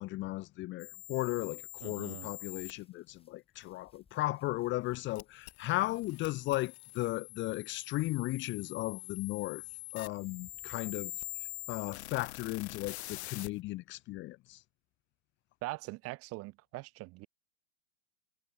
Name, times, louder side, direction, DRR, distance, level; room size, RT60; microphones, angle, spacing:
voice 1, 0.0-9.6 9.9-11.1 11.7-14.6, left 18 dB, 30° left, 0.9 m, -36 dB
sound 1, 0.8-2.7 5.2-13.5, left 17 dB, 60° left, 1.5 m, -45 dB
voice 2, 1.8-2.3 15.6-17.3, right 22 dB, 40° right, 2.1 m, -42 dB
sound 2, 2.5-10.8, left 5 dB, 15° left, 7.2 m, -70 dB
hypercardioid pair, 120°, 37 cm